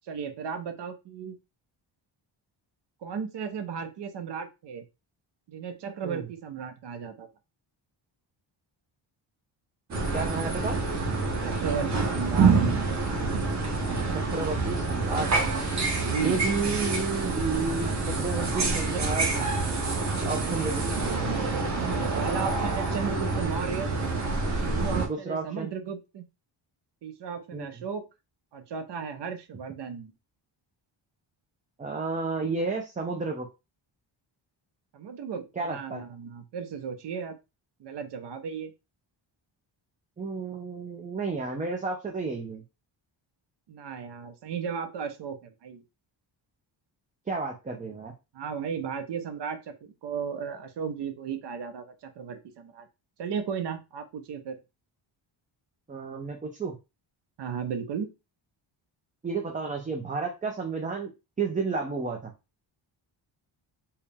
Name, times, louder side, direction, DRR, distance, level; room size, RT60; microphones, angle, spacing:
voice 1, 0.0-1.3 3.0-4.8 5.5-7.3 11.4-12.6 15.9-16.5 18.6-19.5 21.8-23.9 24.7-26.2 27.0-28.1 28.5-30.1 34.9-37.4 37.8-38.7 43.7-45.8 48.3-52.9 53.2-54.6 57.4-58.1, right 6 dB, 60° right, 7 dB, 0.8 m, -35 dB
sound 1, 9.9-25.1, right 3 dB, 35° right, 0.9 m, -27 dB
voice 2, 10.1-10.8 14.1-15.3 16.2-17.9 18.2-19.3 20.2-20.9 25.1-25.7 27.5-27.7 31.8-33.5 35.6-36.0 40.2-42.6 47.3-48.1 55.9-56.7 59.2-61.1 61.4-62.3, right 4 dB, 20° right, 2 dB, 0.4 m, -31 dB
4.5 x 2.1 x 3.4 m, 0.26 s
wide cardioid pair, 175°, 47 cm